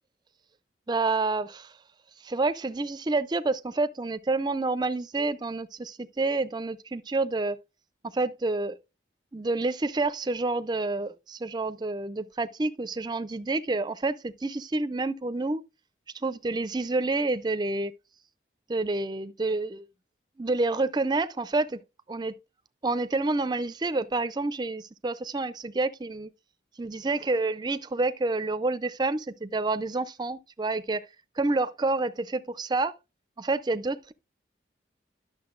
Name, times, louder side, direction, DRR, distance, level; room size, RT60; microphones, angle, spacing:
voice 1, 0.9-1.7 2.2-7.6 8.1-8.8 9.3-15.6 16.1-17.9 18.7-19.9 20.4-21.8 22.1-22.3 22.8-26.3 26.8-31.1 31.4-32.9 33.4-34.1, right 3 dB, 25° right, 0.4 m, -28 dB
11.5 x 6.4 x 2.4 m
head